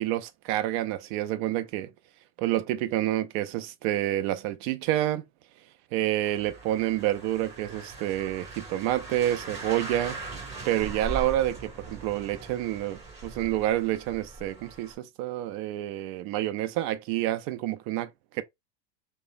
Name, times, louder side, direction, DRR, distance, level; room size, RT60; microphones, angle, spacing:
voice 1, 0.0-1.9 2.4-5.2 5.9-10.2 10.6-18.4, right 13 dB, 55° right, 0.6 m, -28 dB
sound 1, 6.2-14.9, right 3 dB, 20° right, 2.0 m, -40 dB
3.1 x 2.1 x 2.5 m
supercardioid pair, 115°, 30 cm